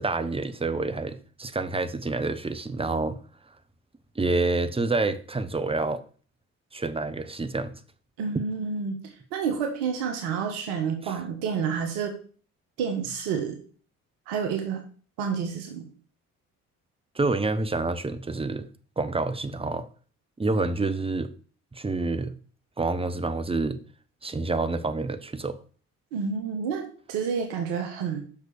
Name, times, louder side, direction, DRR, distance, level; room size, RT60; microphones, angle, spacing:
voice 1, 0.0-3.2 4.1-6.0 6.7-7.7 8.3-8.5 11.0-11.1 17.1-18.7 19.0-19.9 20.4-21.3 21.7-22.3 22.8-23.8 24.2-25.6, right 3 dB, 15° right, 1.0 m, -28 dB
voice 2, 8.2-9.0 9.3-12.1 12.8-13.6 14.3-14.8 15.2-15.9 26.1-26.8 27.1-28.3, right 6 dB, 70° right, 1.6 m, -29 dB
6.1 x 5.2 x 6.8 m
figure-of-eight pair, 50°, 42 cm